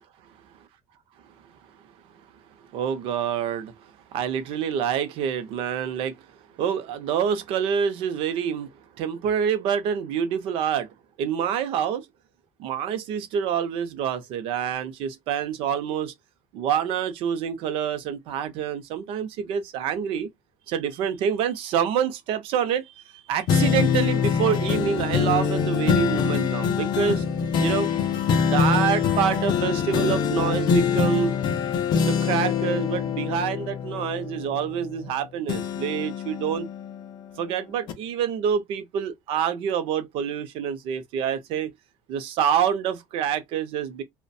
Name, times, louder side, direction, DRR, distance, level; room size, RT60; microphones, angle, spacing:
voice 1, 2.7-3.7 4.1-6.2 6.6-8.7 9.0-10.9 11.2-12.0 12.6-16.1 16.5-20.3 20.7-22.9 23.3-27.2 27.6-27.9 28.4-31.3 32.0-36.7 37.4-41.7 42.1-44.0, right 8 dB, 55° right, 0.5 m, -26 dB
sound 1, 23.5-35.1 35.5-37.4 37.9-38.0, left 6 dB, 40° left, 0.5 m, -24 dB
2.3 x 2.1 x 2.6 m
cardioid pair, 170°, 11 cm